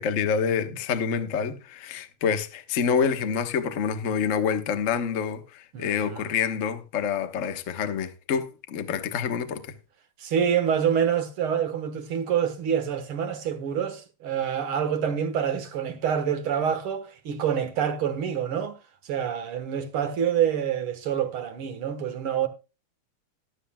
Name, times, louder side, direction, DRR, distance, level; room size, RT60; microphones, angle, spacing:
voice 1, 0.0-9.6, left 6 dB, 75° left, 0.7 m, -27 dB
voice 2, 5.7-6.3 10.2-18.8 19.0-22.5, right 8 dB, 55° right, 1.9 m, -27 dB
14.5 x 12.0 x 2.2 m
omnidirectional pair, 3.3 m